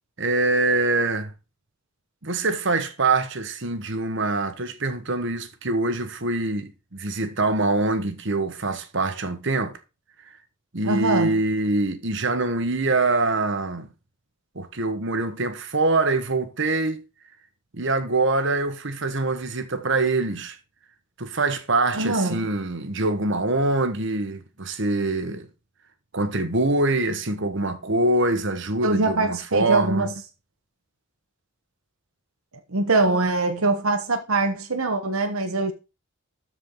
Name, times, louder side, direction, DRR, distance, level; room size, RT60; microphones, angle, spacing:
voice 1, 0.2-1.3 2.2-9.8 10.7-13.9 14.5-17.0 17.7-20.6 21.2-25.5 26.1-30.1, right 2 dB, 60° right, 1.4 m, -24 dB
voice 2, 10.8-11.4 21.9-22.5 28.8-30.1 32.7-35.7, right 2 dB, 90° right, 1.2 m, -23 dB
13.0 x 4.9 x 3.9 m
head